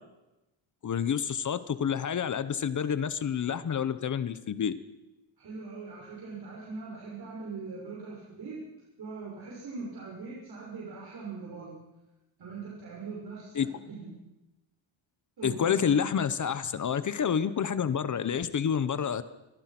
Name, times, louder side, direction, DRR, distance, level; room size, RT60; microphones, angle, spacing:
voice 1, 0.8-4.7 13.5-13.7 15.4-19.2, left 7 dB, 40° left, 13 dB, 1.1 m, -28 dB
voice 2, 5.4-8.6 9.0-11.8 12.4-14.2 15.4-16.0, right 4 dB, 50° right, -4 dB, 6.9 m, -41 dB
26.0 x 23.5 x 6.1 m, 1.0 s
cardioid pair, 155°, 46 cm